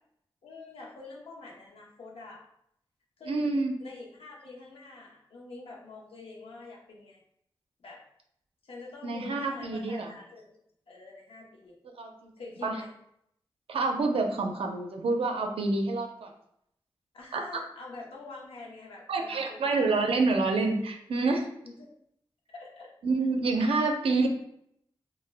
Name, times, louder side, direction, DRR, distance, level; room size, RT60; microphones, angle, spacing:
voice 1, 0.4-2.5 3.2-7.2 7.8-8.0 8.6-10.6 10.9-11.7 12.4-12.9 17.1-19.7 21.6-21.9 22.5-22.9, left 3 dB, 85° left, -3 dB, 0.6 m, -46 dB
voice 2, 3.3-3.7 9.0-10.1 12.0-12.3 12.6-12.8 13.7-16.3 17.3-17.4 19.1-21.5 23.0-24.3, right 3 dB, 85° right, 3 dB, 0.4 m, -27 dB
2.1 x 2.1 x 3.2 m, 0.73 s
cardioid pair, 60°, 9 cm